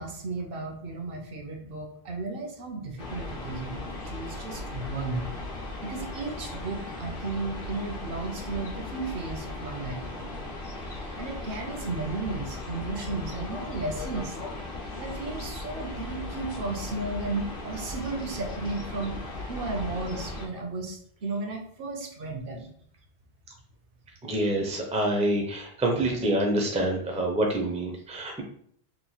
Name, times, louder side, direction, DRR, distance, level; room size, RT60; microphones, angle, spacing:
voice 1, 0.0-5.2 5.8-10.4 11.2-14.4 15.0-19.1 19.5-22.7, right 3 dB, 65° right, 2 dB, 0.8 m, -34 dB
sound 1, 3.0-20.5, left 2 dB, 60° left, 0.9 m, -37 dB
voice 2, 24.2-28.4, right 1 dB, 10° right, 1 dB, 0.4 m, -26 dB
3.0 x 2.2 x 3.9 m, 0.63 s
omnidirectional pair, 1.1 m